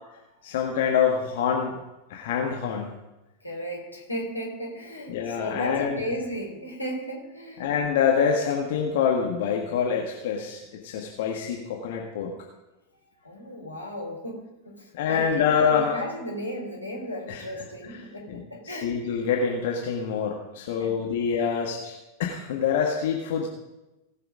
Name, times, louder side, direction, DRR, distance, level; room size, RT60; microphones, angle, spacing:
voice 1, 0.4-1.8 2.1-2.9 5.1-6.0 7.6-12.3 14.9-16.0 17.3-17.4 18.3-21.9 22.2-23.5, left 7 dB, 55° left, 0 dB, 1.7 m, -26 dB
voice 2, 3.4-7.8 12.9-18.9 20.8-21.2, equal, 85° left, -1 dB, 3.5 m, -35 dB
19.0 x 6.7 x 5.1 m, 1.0 s
figure-of-eight pair, 90°, 0 cm